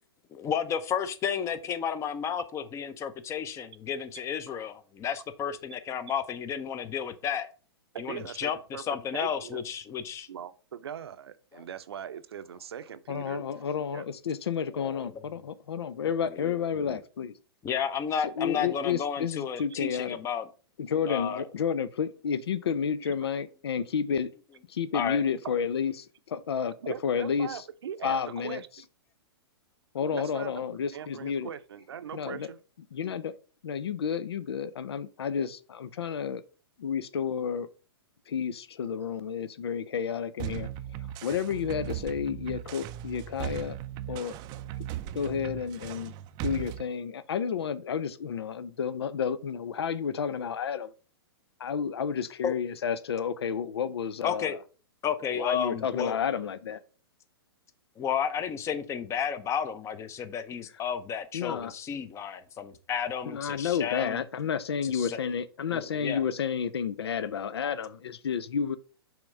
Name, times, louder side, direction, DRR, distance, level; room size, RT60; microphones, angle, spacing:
voice 1, 0.4-7.5 8.0-10.3 11.5-11.6 14.7-15.1 16.3-16.6 16.9-17.0 17.6-20.4 21.1-21.4 24.9-25.2 52.4-52.5 54.2-54.6 55.0-56.2 58.0-64.2 64.8-65.2 65.7-66.2, left 8 dB, 20° left, 0.7 m, -32 dB
voice 2, 7.9-8.8 9.1-9.6 10.3-13.4 13.9-14.0 25.4-25.5 26.8-28.9 30.1-32.6, right 8 dB, 75° right, 0.7 m, -40 dB
voice 3, 13.1-17.3 18.2-20.2 20.8-24.3 24.7-27.6 28.0-28.6 29.9-31.5 32.1-32.5 32.9-33.3 33.6-36.4 36.8-37.7 38.3-40.7 41.2-43.8 44.1-44.3 45.1-46.1 46.4-50.9 51.6-54.6 55.3-56.8 61.3-61.7 63.3-68.8, left 7 dB, 80° left, 0.6 m, -31 dB
sound 1, 40.4-46.8, right 11 dB, 30° right, 0.4 m, -38 dB
5.9 x 3.6 x 5.3 m
hypercardioid pair, 125°, 13 cm